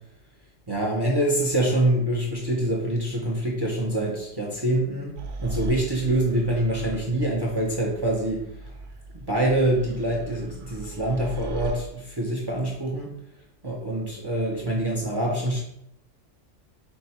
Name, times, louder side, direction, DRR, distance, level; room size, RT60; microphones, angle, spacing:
voice 1, 0.7-5.1 5.4-8.5 9.1-13.1 13.6-15.6, right 1 dB, 40° right, -2 dB, 0.3 m, -25 dB
sound 1, 5.2-11.7, right 2 dB, 75° right, 1.0 m, -38 dB
4.5 x 2.2 x 4.1 m, 0.77 s
omnidirectional pair, 1.3 m